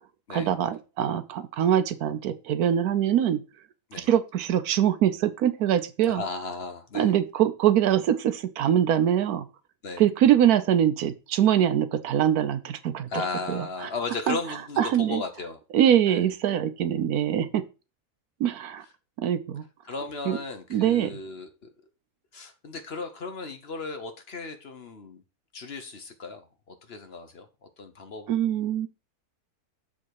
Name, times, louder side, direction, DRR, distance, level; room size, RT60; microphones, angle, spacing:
voice 1, 0.3-3.4 4.0-6.2 6.9-9.4 10.0-13.1 13.5-13.7 14.3-14.4 14.8-15.2 15.7-17.6 18.4-18.8 19.2-19.6 20.3-20.4 20.7-21.2 28.3-28.9, right 10 dB, 80° right, 1.2 m, -23 dB
voice 2, 6.1-7.1 9.8-10.0 13.1-15.6 16.1-16.3 19.9-21.7 22.3-25.2 25.5-27.5 27.8-28.3, left 3 dB, 50° left, 1.0 m, -35 dB
6.9 x 5.0 x 4.6 m
omnidirectional pair, 1.6 m